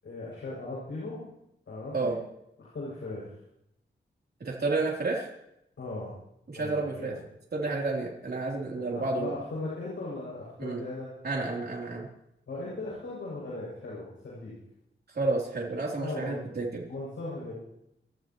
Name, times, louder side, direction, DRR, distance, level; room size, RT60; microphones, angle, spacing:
voice 1, 0.0-1.3 1.7-2.2 2.6-3.3 5.8-6.1 6.6-7.2 8.8-11.1 12.5-14.5 16.0-16.4 16.9-17.5, left 2 dB, 80° left, -7 dB, 7.0 m, -38 dB
voice 2, 4.4-5.3 6.5-7.1 7.5-9.3 10.6-10.8 11.2-12.1 15.1-16.9, right 3 dB, 55° right, -3 dB, 3.4 m, -30 dB
28.0 x 13.5 x 3.1 m, 0.79 s
wide cardioid pair, 135°, 20 cm